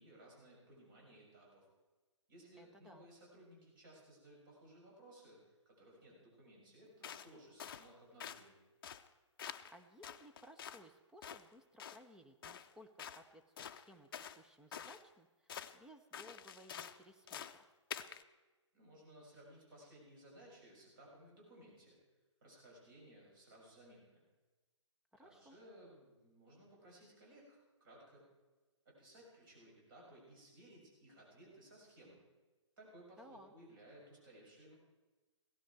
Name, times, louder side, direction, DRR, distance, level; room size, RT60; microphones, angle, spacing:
voice 1, 0.0-1.7 2.3-8.6 18.7-22.0 22.4-24.2 25.2-28.3 28.9-32.2 32.8-34.7, right 1 dB, 40° right, -3 dB, 6.9 m, -60 dB
voice 2, 2.6-3.1 9.7-17.7 25.1-25.6 33.2-33.5, equal, 5° right, 5 dB, 0.7 m, -60 dB
sound 1, 7.0-7.3 7.6-7.9 8.2-8.5 8.8-9.1 9.4-9.8 10.0-10.9 11.2-11.4 11.8-12.0 12.4-12.7 13.0-13.2 13.6-14.4 14.7-15.0 15.5-15.8 16.1-17.0 17.3-17.6 17.9-18.2, left 8 dB, 45° left, 0.7 m, -48 dB
17.0 x 14.5 x 4.7 m, 1.2 s
figure-of-eight pair, 135°, 16 cm